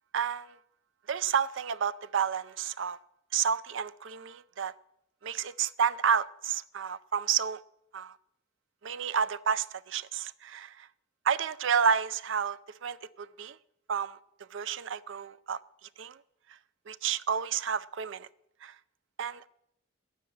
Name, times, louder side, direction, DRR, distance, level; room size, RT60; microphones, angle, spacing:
voice 1, 0.1-0.6 1.1-3.0 3.3-4.7 5.2-7.6 7.9-8.2 8.8-10.9 11.2-13.6 13.9-14.2 14.5-16.2 16.5-16.6 16.9-18.3 18.6-18.8 19.2-19.5, right 7 dB, 60° right, 0.4 m, -30 dB
12.0 x 7.1 x 9.2 m
head